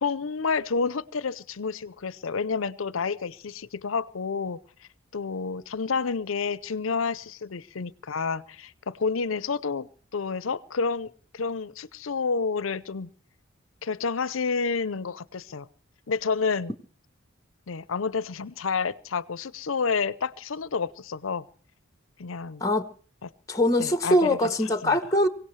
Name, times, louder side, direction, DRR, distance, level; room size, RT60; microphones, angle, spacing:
voice 1, 0.0-4.6 5.1-13.1 13.8-15.7 16.1-16.7 17.7-21.4 22.2-22.6 23.2-23.3 23.8-24.4 24.8-25.0, left 5 dB, 80° left, 0.7 m, -29 dB
voice 2, 23.5-25.3, left 1 dB, 15° left, 0.9 m, -22 dB
23.5 x 17.0 x 3.2 m
head